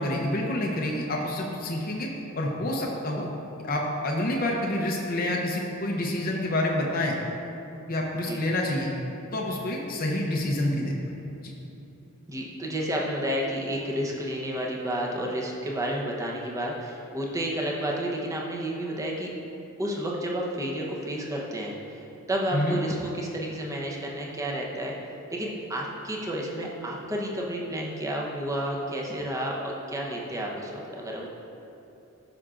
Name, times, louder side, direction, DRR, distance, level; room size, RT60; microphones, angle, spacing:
voice 1, 0.0-2.1 2.4-3.3 3.6-7.2 7.9-8.9 9.3-10.9 11.4-11.5 22.5-22.8, left 1 dB, 40° left, -1 dB, 0.7 m, -28 dB
voice 2, 12.3-19.3 19.8-24.9 25.3-31.3, right 1 dB, 15° right, -3 dB, 0.8 m, -31 dB
13.0 x 5.9 x 2.5 m, 2.9 s
head